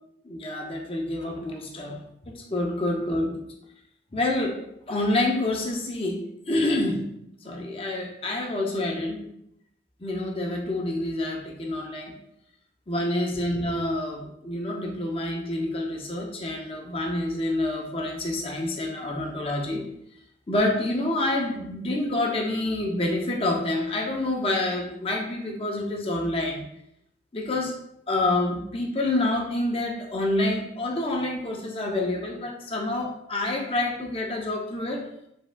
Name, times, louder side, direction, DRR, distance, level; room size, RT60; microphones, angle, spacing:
voice 1, 0.2-3.4 4.1-7.1 7.4-9.3 10.0-12.1 12.9-19.8 20.5-26.7 27.3-27.7 28.1-35.1, left 1 dB, 30° left, 1 dB, 0.6 m, -27 dB
4.4 x 3.5 x 2.2 m, 0.77 s
head